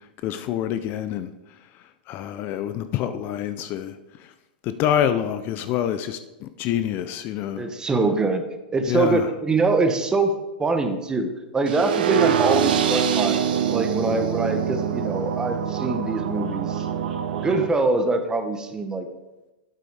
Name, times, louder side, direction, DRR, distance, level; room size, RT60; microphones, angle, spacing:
voice 1, 0.2-1.3 2.1-4.0 4.6-7.6 8.9-9.3, left 10 dB, 40° left, 0.4 m, -26 dB
voice 2, 7.6-8.4 8.7-13.4 13.7-16.9 17.4-19.1, right 3 dB, 15° right, 0.9 m, -24 dB
sound 1, 11.7-17.7, right 8 dB, 70° right, 0.8 m, -24 dB
8.3 x 7.6 x 3.4 m
hypercardioid pair, 110°, 5 cm